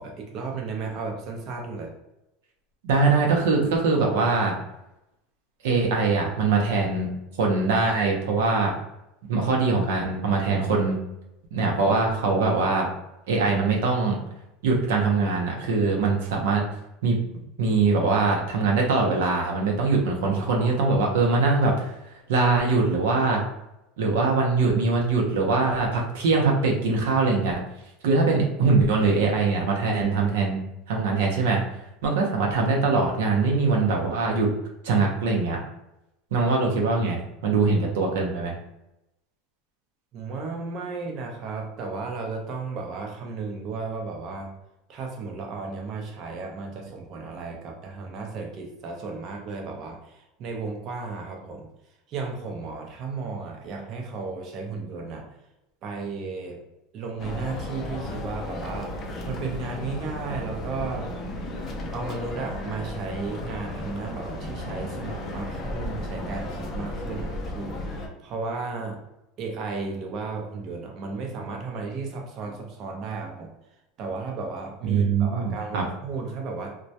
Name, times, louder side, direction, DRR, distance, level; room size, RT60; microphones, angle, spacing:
voice 1, 0.0-1.9 20.2-20.8 40.1-44.5 44.9-51.7 52.1-55.2 55.8-56.6 56.9-61.1 61.9-69.0 69.4-73.5 74.0-76.7, right 4 dB, 45° right, 1 dB, 0.6 m, -34 dB
voice 2, 2.8-4.6 5.6-7.1 7.4-8.7 9.2-11.0 11.5-12.9 13.3-14.2 14.6-16.6 17.0-17.2 17.6-21.9 22.3-23.4 24.0-27.6 28.0-31.6 32.0-34.5 34.8-35.6 36.3-38.5 74.9-75.8, right 3 dB, 90° right, 0 dB, 0.6 m, -22 dB
sound 1, 57.2-68.1, left 1 dB, 30° left, 0.4 m, -34 dB
2.1 x 2.1 x 2.7 m, 0.89 s
supercardioid pair, 135°, 0 cm